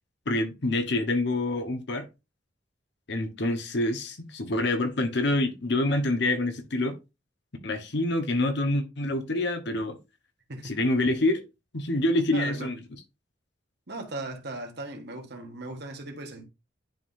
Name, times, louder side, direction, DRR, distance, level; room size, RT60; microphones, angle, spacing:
voice 1, 0.3-2.1 3.1-6.9 7.6-10.0 10.6-11.4 11.7-12.8, left 2 dB, 65° left, 1.1 m, -26 dB
voice 2, 12.3-12.7 13.9-16.4, right 2 dB, 60° right, 1.4 m, -38 dB
10.5 x 3.7 x 2.6 m
head